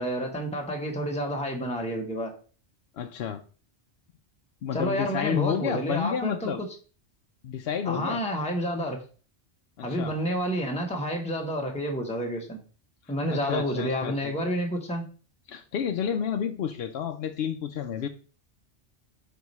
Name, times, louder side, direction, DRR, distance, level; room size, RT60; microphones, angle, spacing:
voice 1, 0.0-2.3 4.7-6.7 7.8-9.0 9.8-12.6 13.1-15.1, equal, 5° left, 1 dB, 1.2 m, -29 dB
voice 2, 2.9-3.4 4.6-6.6 7.4-8.2 9.8-10.2 13.3-14.3 15.5-18.1, left 8 dB, 70° left, 5 dB, 0.8 m, -30 dB
4.8 x 4.6 x 5.4 m, 0.38 s
omnidirectional pair, 1.2 m